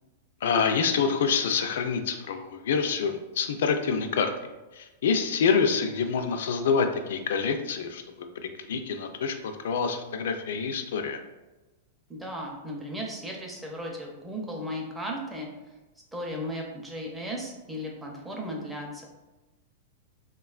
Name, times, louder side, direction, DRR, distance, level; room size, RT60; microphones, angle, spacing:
voice 1, 0.4-4.3 4.7-8.0 8.4-9.4 9.6-11.2, left 6 dB, 75° left, 7 dB, 0.3 m, -26 dB
voice 2, 12.1-15.5 16.1-19.0, equal, 5° right, -1 dB, 0.5 m, -35 dB
3.4 x 2.2 x 2.3 m, 1.1 s
supercardioid pair, 150°, 0 cm